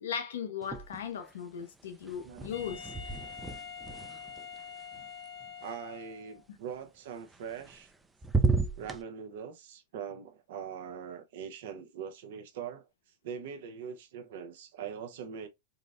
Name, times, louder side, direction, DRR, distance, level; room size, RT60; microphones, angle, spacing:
voice 1, 0.0-2.9, left 8 dB, 85° left, 0.7 m, -37 dB
sound 1, 0.6-1.3 1.6-5.7 7.3-7.9 8.2-9.0, right 3 dB, 10° right, 0.4 m, -33 dB
Wind instrument woodwind instrument, 2.5-6.4, left 7 dB, 40° left, 1.0 m, -45 dB
voice 2, 5.6-7.9 8.8-12.9 13.2-15.5, right 7 dB, 70° right, 0.6 m, -42 dB
3.7 x 2.0 x 2.4 m
hypercardioid pair, 115°, 0 cm